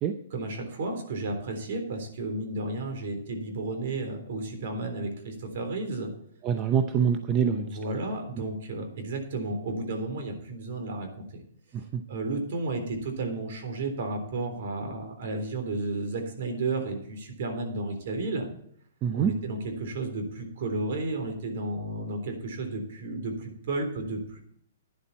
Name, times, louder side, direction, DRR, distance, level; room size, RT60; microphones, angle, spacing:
voice 1, 0.3-6.1 7.5-11.2 12.1-18.5 19.1-24.4, right 2 dB, 55° right, 5 dB, 3.6 m, -32 dB
voice 2, 6.4-7.8 11.7-12.0 19.0-19.3, right 7 dB, 25° right, 8 dB, 0.7 m, -25 dB
11.5 x 10.5 x 4.3 m, 0.66 s
hypercardioid pair, 160°, 0 cm